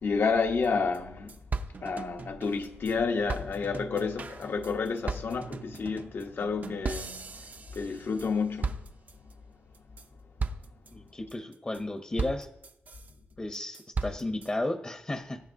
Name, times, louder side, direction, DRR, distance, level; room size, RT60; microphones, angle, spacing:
voice 1, 0.0-1.4 1.8-7.4 7.7-8.8, left 5 dB, 65° left, 0.9 m, -30 dB
sound 1, 0.6-0.7 0.9-1.0 1.3-2.9 3.3-8.3 8.6-9.3 9.7-10.1 10.4-10.9 11.3-11.8 12.2-13.1 13.5-14.5, right 4 dB, 40° right, 0.5 m, -37 dB
voice 2, 10.9-12.5 13.4-15.4, left 1 dB, 25° left, 0.8 m, -33 dB
19.5 x 10.0 x 2.7 m
wide cardioid pair, 120°, 4 cm